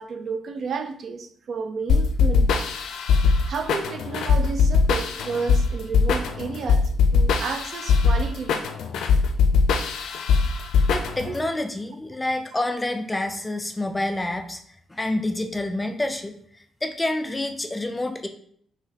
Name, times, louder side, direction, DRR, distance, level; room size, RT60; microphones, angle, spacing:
voice 1, 0.0-2.7 3.5-8.8 11.2-11.4, right 5 dB, 45° right, 7 dB, 0.5 m, -32 dB
sound 1, 1.9-11.4, left 5 dB, 90° left, 0.5 m, -21 dB
voice 2, 10.9-14.6 14.9-18.3, left 1 dB, 10° left, 6 dB, 0.3 m, -28 dB
5.8 x 3.1 x 2.8 m, 0.63 s
cardioid pair, 170°, 0 cm